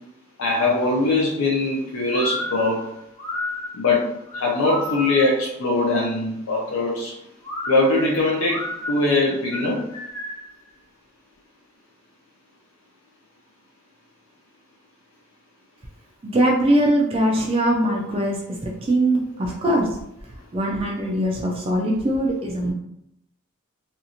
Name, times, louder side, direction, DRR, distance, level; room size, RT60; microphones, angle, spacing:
voice 1, 0.4-2.8 3.8-4.1 4.3-7.2 7.7-9.8 22.6-22.7, left 2 dB, 70° left, -2 dB, 0.5 m, -21 dB
sound 1, 2.1-5.4 7.4-10.5, left 2 dB, 15° left, 0.7 m, -32 dB
voice 2, 16.2-19.9 20.5-22.7, right 1 dB, 25° right, -1 dB, 0.4 m, -21 dB
2.6 x 2.4 x 2.7 m, 0.78 s
head